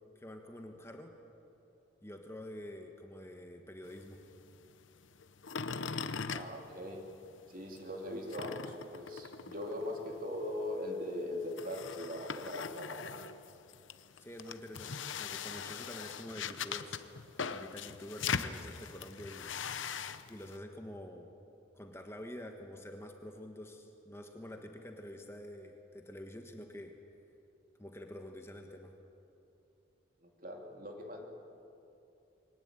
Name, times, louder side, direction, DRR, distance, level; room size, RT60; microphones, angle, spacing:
voice 1, 0.1-1.1 2.0-4.2 14.2-19.9 20.3-21.3 21.7-26.9 27.8-28.9, left 1 dB, 15° left, 4 dB, 1.3 m, -47 dB
sound 1, 3.8-7.4 7.7-20.6, left 6 dB, 90° left, 0.9 m, -41 dB
voice 2, 6.3-7.0 7.5-13.1 30.2-31.3, left 1 dB, 45° right, 1 dB, 3.1 m, -40 dB
22.5 x 19.0 x 8.9 m, 2.8 s
head